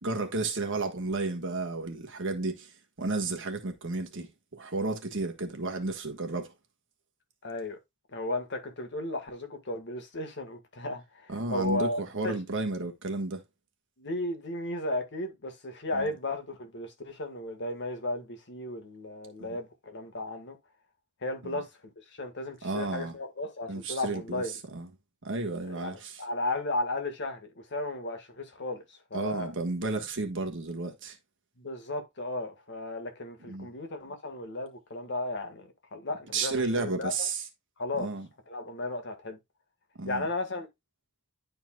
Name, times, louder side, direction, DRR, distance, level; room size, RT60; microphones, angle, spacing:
voice 1, 0.0-2.7 3.0-6.5 11.3-13.4 15.9-16.1 19.4-19.6 21.4-21.6 22.6-23.2 23.7-24.4 24.7-24.9 25.2-26.2 29.1-31.2 33.5-33.7 36.3-37.4 38.0-38.3 40.0-40.3, right 3 dB, 60° right, 1.5 m, -32 dB
voice 2, 7.4-7.8 8.1-12.4 14.0-20.6 21.2-21.7 22.0-24.6 25.7-29.5 31.6-37.3 37.8-38.1 38.5-39.4 40.0-40.7, left 2 dB, 55° left, 1.6 m, -35 dB
11.0 x 4.5 x 2.3 m
head